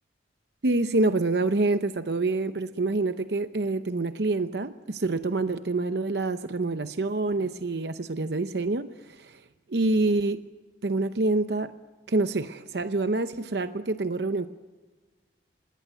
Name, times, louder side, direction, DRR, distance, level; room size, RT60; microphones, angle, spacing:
voice 1, 0.6-9.4 9.7-10.4 10.8-11.7 12.1-14.5, right 2 dB, 65° right, 10 dB, 0.8 m, -26 dB
26.5 x 20.5 x 9.3 m, 1.3 s
head